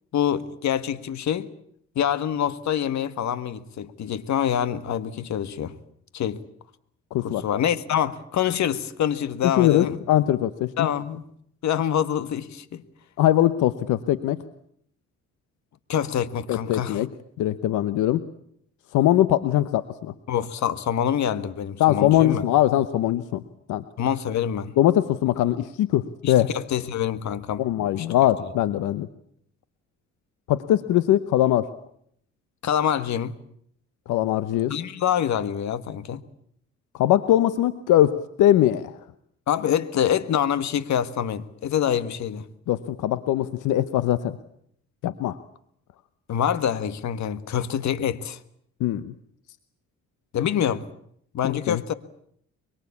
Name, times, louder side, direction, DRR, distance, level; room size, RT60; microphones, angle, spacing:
voice 1, 0.1-1.5 1.9-5.7 6.1-6.4 7.2-10.0 10.8-11.2 11.6-12.8 15.9-17.0 20.3-22.4 24.0-24.7 26.2-28.1 32.6-33.3 34.7-36.2 39.5-42.5 46.3-48.4 50.3-50.8 51.3-51.9, left 9 dB, 65° left, 1.7 m, -26 dB
voice 2, 7.1-7.4 9.6-10.9 13.2-14.4 16.5-17.1 17.4-18.3 18.9-20.1 21.8-23.4 23.7-23.8 24.8-26.5 27.6-29.1 30.5-31.7 34.1-34.7 36.9-39.0 42.7-44.3 45.0-45.4 48.8-49.1 51.4-51.8, left 13 dB, 90° left, 1.0 m, -21 dB
24.0 x 23.5 x 8.5 m
cardioid pair, 90°, 30 cm